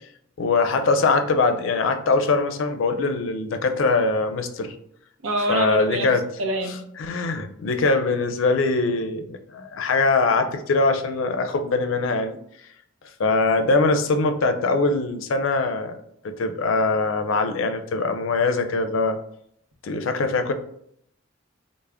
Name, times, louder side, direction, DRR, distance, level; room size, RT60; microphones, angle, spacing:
voice 1, 0.4-4.7 5.5-6.2 7.0-12.4 13.2-16.0 16.2-19.2 19.8-20.5, left 3 dB, 70° left, 7 dB, 0.4 m, -22 dB
voice 2, 5.2-6.1 6.4-6.8, right 1 dB, 85° right, 3 dB, 0.6 m, -25 dB
3.4 x 2.0 x 3.3 m, 0.70 s
head